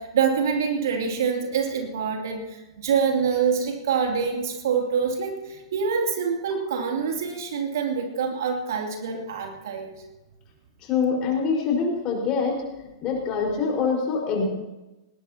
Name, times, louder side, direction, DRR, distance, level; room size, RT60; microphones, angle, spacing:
voice 1, 0.0-9.9, right 6 dB, 60° right, 2 dB, 2.8 m, -26 dB
voice 2, 10.8-12.6 13.0-14.5, left 5 dB, 35° left, -1 dB, 4.9 m, -24 dB
19.5 x 19.0 x 2.9 m, 1.0 s
figure-of-eight pair, 100°, 2 cm